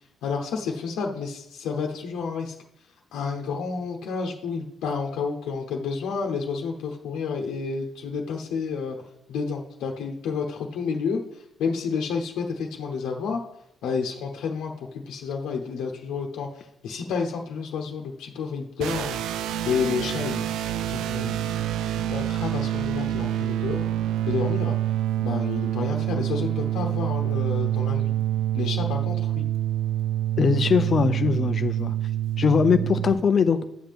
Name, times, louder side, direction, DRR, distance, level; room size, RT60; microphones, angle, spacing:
voice 1, 0.2-2.5 3.1-9.0 9.3-13.4 13.8-19.2 19.6-20.5 20.9-23.9 24.3-24.7 25.2-28.1 28.5-29.4, left 5 dB, 85° left, 0 dB, 0.9 m, -30 dB
sound 1, 18.8-33.1, right 12 dB, 80° right, 0.3 m, -26 dB
voice 2, 30.4-31.9 32.4-33.7, left 5 dB, 35° left, 9 dB, 0.5 m, -21 dB
10.0 x 7.5 x 3.5 m, 0.81 s
cardioid pair, 170°, 0 cm